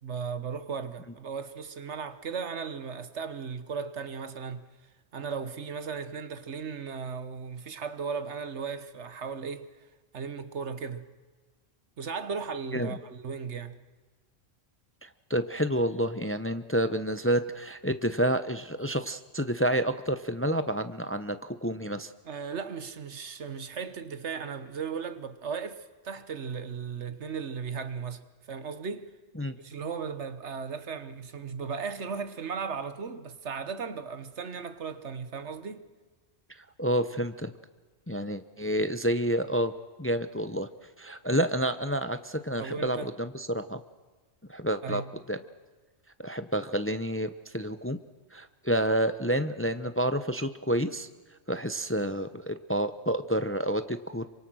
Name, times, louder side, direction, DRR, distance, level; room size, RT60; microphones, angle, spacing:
voice 1, 0.0-4.6 5.1-9.7 10.1-11.0 12.0-13.8 22.2-28.2 28.5-29.1 29.6-35.9 42.6-43.1 44.8-45.1, right 6 dB, 75° right, 1.5 m, -36 dB
voice 2, 15.0-22.1 29.4-29.5 36.8-37.5 38.1-39.7 40.0-40.7 41.0-43.8 44.5-45.0 45.3-45.4 46.2-48.0 48.3-51.1 51.5-54.3, equal, 15° left, 0.7 m, -29 dB
27.5 x 25.0 x 6.3 m
omnidirectional pair, 1.2 m